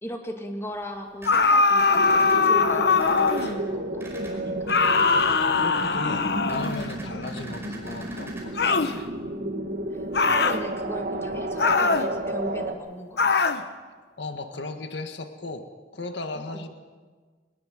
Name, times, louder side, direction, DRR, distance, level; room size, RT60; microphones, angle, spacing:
voice 1, 0.0-2.0 2.4-4.0 4.3-4.7 7.1-7.8 9.2-13.3 16.4-16.7, equal, 15° left, 3 dB, 2.2 m, -38 dB
sound 1, 1.2-3.6 4.7-6.9 8.6-9.0 10.1-10.6 11.6-12.1 13.2-13.6, left 4 dB, 65° left, 1.1 m, -21 dB
sound 2, 1.2-2.4 2.9-3.5 4.0-4.3 4.7-5.4 6.5-8.4, right 2 dB, 15° right, 5.1 m, -42 dB
sound 3, 1.9-12.7, right 1 dB, 60° right, 2.1 m, -32 dB
voice 2, 5.4-9.1 10.3-10.4 14.2-15.7 15.9-16.7, left 2 dB, 85° left, 7 dB, 1.8 m, -36 dB
22.0 x 20.0 x 7.8 m, 1.5 s
head